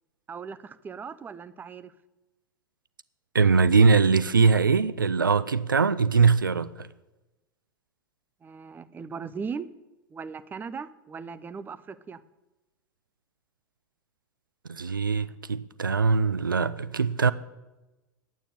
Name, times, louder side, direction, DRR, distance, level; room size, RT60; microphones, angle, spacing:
voice 1, 0.3-1.9 8.4-9.7 10.1-12.2, right 5 dB, 15° right, 0.6 m, -38 dB
voice 2, 3.3-6.9 14.7-17.3, right 5 dB, 85° right, 0.4 m, -22 dB
9.4 x 9.0 x 9.3 m
figure-of-eight pair, 85°, 11 cm